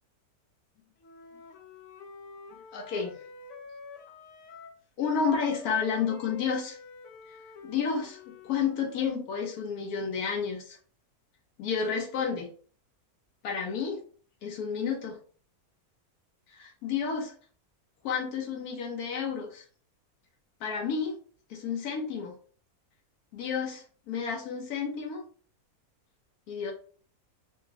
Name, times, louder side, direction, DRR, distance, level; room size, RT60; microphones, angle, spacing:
Wind instrument woodwind instrument, 1.0-4.8 5.1-9.1, left 3 dB, 65° left, 0.8 m, -48 dB
voice 1, 2.7-3.1 5.0-6.8 7.6-10.8 11.6-12.5 13.4-14.0 14.4-15.1 16.5-17.3 18.0-19.6 20.6-21.2 21.5-22.3 23.3-25.2 26.5-26.7, left 6 dB, 85° left, 0 dB, 1.3 m, -31 dB
4.1 x 2.0 x 2.7 m, 0.43 s
omnidirectional pair, 1.6 m